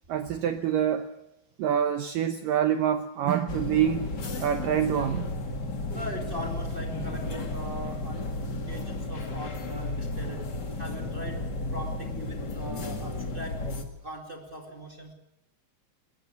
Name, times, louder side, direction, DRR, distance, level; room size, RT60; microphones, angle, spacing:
voice 1, 0.1-1.1 1.6-4.1 4.4-5.3, right 9 dB, 80° right, 8 dB, 2.0 m, -26 dB
sound 1, 3.5-13.8, left 2 dB, 50° left, 1.2 m, -33 dB
voice 2, 5.9-13.7 14.0-15.1, equal, 30° right, 3 dB, 1.0 m, -40 dB
20.5 x 18.0 x 8.3 m, 0.82 s
omnidirectional pair, 5.2 m